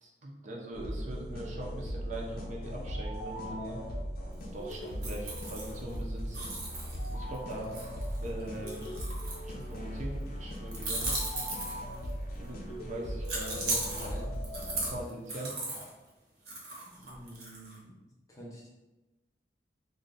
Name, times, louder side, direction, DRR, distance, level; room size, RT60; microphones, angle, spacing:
voice 1, 0.0-3.8 4.5-6.5 7.1-7.7 8.2-8.8 9.4-11.2 12.3-13.6 14.8-15.6, right 1 dB, 45° right, -2 dB, 0.5 m, -41 dB
sound 1, 0.7-15.0, equal, 55° left, 0.5 m, -38 dB
sound 2, 4.7-6.0 6.3-9.8 10.7-12.1 13.2-15.9 16.5-17.7, right 2 dB, 65° right, 0.9 m, -37 dB
voice 2, 13.5-14.3 16.8-17.9 18.3-18.7, left 1 dB, 20° left, -4 dB, 0.7 m, -46 dB
2.5 x 2.2 x 3.8 m, 1.0 s
head